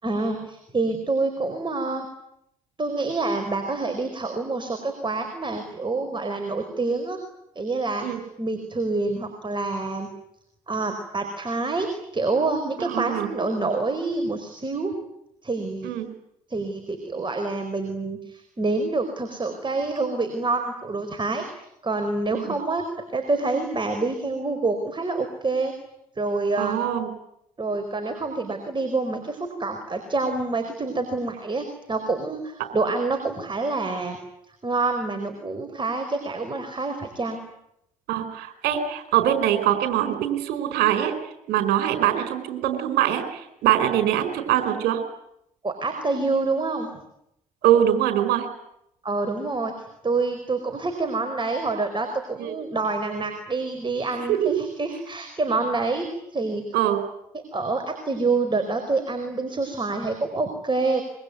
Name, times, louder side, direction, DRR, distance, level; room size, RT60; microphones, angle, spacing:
voice 1, 0.0-2.1 2.8-7.2 7.5-8.0 8.4-10.1 10.7-14.9 15.4-15.9 16.5-21.4 21.8-22.8 23.1-25.7 26.2-26.8 27.6-34.2 34.6-37.4 45.6-46.9 49.0-49.7 50.0-56.1 56.3-56.6 57.5-61.0, right 3 dB, 25° right, 6 dB, 4.8 m, -27 dB
voice 2, 12.8-13.3 15.8-16.1 22.3-22.5 26.6-27.1 38.1-41.1 41.5-45.0 47.6-48.5 52.4-52.5 54.3-54.6 56.7-57.0, right 11 dB, 65° right, 8 dB, 4.6 m, -23 dB
26.0 x 23.5 x 9.4 m, 0.80 s
figure-of-eight pair, 45°, 18 cm